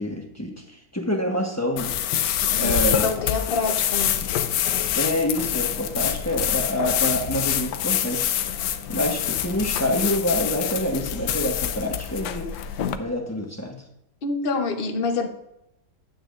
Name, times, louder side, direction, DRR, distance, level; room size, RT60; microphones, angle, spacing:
voice 1, 0.0-2.0 2.6-3.1 4.9-8.3 8.9-12.5 13.0-13.8, left 1 dB, 10° left, 0.8 m, -26 dB
sound 1, 1.8-13.0, left 10 dB, 80° left, 1.2 m, -26 dB
voice 2, 2.4-4.2 14.2-15.3, left 4 dB, 45° left, 0.8 m, -27 dB
9.9 x 8.7 x 2.5 m
omnidirectional pair, 1.8 m